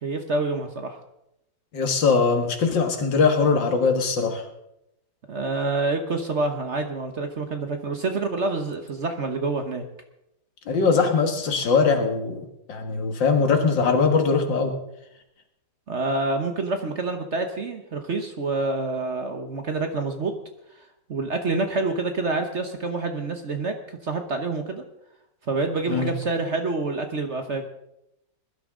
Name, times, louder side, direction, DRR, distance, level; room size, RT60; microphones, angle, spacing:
voice 1, 0.0-1.0 5.3-9.9 15.9-20.3 21.1-24.8 25.5-27.7, right 3 dB, 45° right, 6 dB, 1.1 m, -27 dB
voice 2, 1.7-4.4 10.7-14.8 25.9-26.1, left 4 dB, 75° left, 5 dB, 2.4 m, -21 dB
20.5 x 12.0 x 3.8 m, 0.83 s
omnidirectional pair, 2.0 m